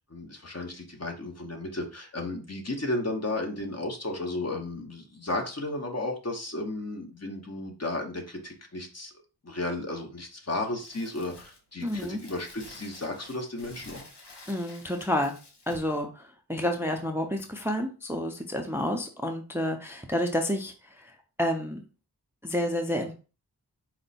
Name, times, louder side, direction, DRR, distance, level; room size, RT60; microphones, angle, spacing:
voice 1, 0.1-9.1 9.4-14.1, left 2 dB, 40° left, 2 dB, 0.9 m, -34 dB
Crumpling crinkling, 10.8-16.0, left 2 dB, 90° left, 0.9 m, -50 dB
voice 2, 11.8-12.2 14.5-15.3 15.7-21.8 22.4-23.1, left 1 dB, 5° right, 4 dB, 0.5 m, -30 dB
4.4 x 2.1 x 4.0 m, 0.34 s
wide cardioid pair, 50°, 39 cm